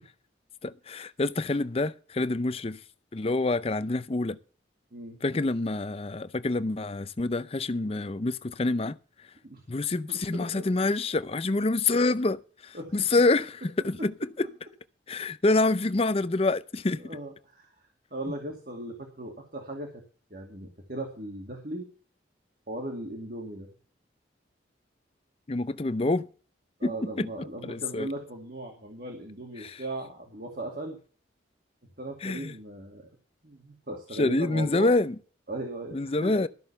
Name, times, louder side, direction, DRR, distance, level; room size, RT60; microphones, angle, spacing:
voice 1, 0.6-2.8 3.1-4.4 5.2-9.0 9.7-14.5 15.1-17.0 25.5-26.3 26.8-26.9 27.2-27.3 27.6-28.1 29.6-29.8 32.2-32.5 34.2-35.1 35.9-36.5, left 2 dB, 30° left, 0.5 m, -27 dB
voice 2, 10.1-10.7 12.7-12.9 17.0-17.7 18.1-20.0 20.3-21.9 22.7-23.7 26.8-31.0 32.0-33.1 33.4-34.9 35.5-36.4, right 1 dB, 50° right, 2.4 m, -38 dB
13.5 x 6.6 x 6.8 m
head